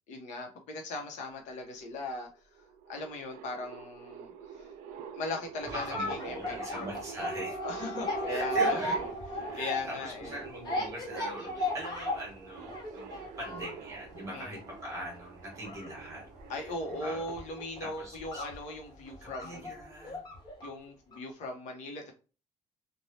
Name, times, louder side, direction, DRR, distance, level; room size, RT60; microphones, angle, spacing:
voice 1, 0.1-2.3 2.9-4.3 4.6-4.7 5.1-6.9 7.6-9.0 9.5-10.3 14.3-14.6 16.5-19.7 20.6-22.1, left 2 dB, 65° left, 3 dB, 0.8 m, -39 dB
sound 1, 2.2-2.3 2.5-18.4, right 7 dB, 80° right, 0.5 m, -47 dB
sound 2, 5.6-20.8 21.1-21.2, equal, 30° left, 0.9 m, -36 dB
voice 2, 5.7-7.6 8.3-9.0 9.5-17.3 17.8-18.4 19.2-20.3, equal, 25° right, -2 dB, 1.4 m, -41 dB
3.2 x 2.2 x 2.6 m, 0.34 s
cardioid pair, 170°, 13 cm